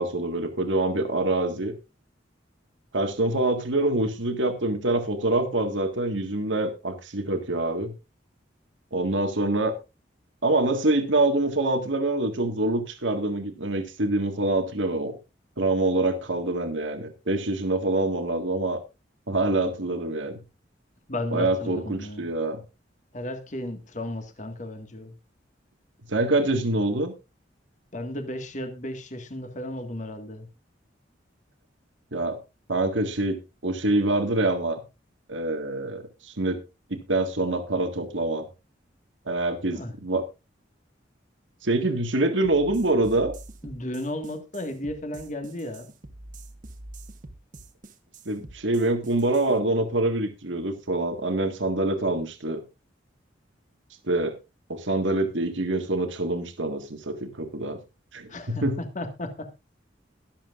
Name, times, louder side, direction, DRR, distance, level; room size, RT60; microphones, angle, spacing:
voice 1, 0.0-1.7 2.9-7.9 8.9-9.7 10.4-15.1 15.6-18.8 19.3-20.4 21.3-22.6 26.1-27.1 32.1-32.4 32.7-33.4 33.6-34.8 35.3-36.6 36.9-38.5 39.3-40.2 41.6-43.4 48.3-52.6 54.0-54.3 54.7-57.8 58.1-58.8, right 2 dB, 85° right, 6 dB, 1.8 m, -25 dB
voice 2, 21.1-22.3 23.1-25.1 27.9-30.5 39.7-39.9 43.6-45.9 58.3-59.5, left 1 dB, 40° left, 6 dB, 1.8 m, -34 dB
sound 1, 42.4-49.5, right 2 dB, 45° right, 1.5 m, -45 dB
22.5 x 7.6 x 2.5 m, 0.26 s
head